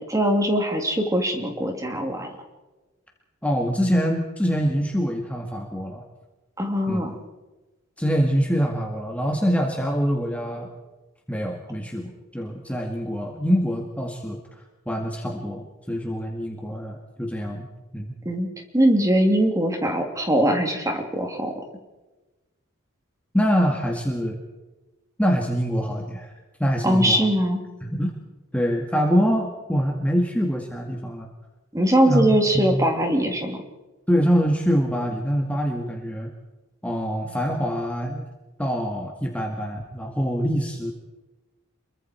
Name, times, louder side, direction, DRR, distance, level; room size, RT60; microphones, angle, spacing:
voice 1, 0.1-2.3 6.6-7.1 18.2-18.5 18.7-21.5 26.8-27.6 31.7-33.6, right 1 dB, 15° right, 3 dB, 3.1 m, -21 dB
voice 2, 3.4-6.0 6.9-7.0 8.0-10.7 11.3-17.7 17.9-18.1 23.3-24.4 25.2-26.3 26.6-27.3 27.8-28.1 28.5-31.3 32.1-32.3 32.5-32.9 34.1-36.3 36.8-38.2 38.6-40.9, equal, 5° left, 1 dB, 2.0 m, -24 dB
28.0 x 23.0 x 4.6 m, 1.1 s
head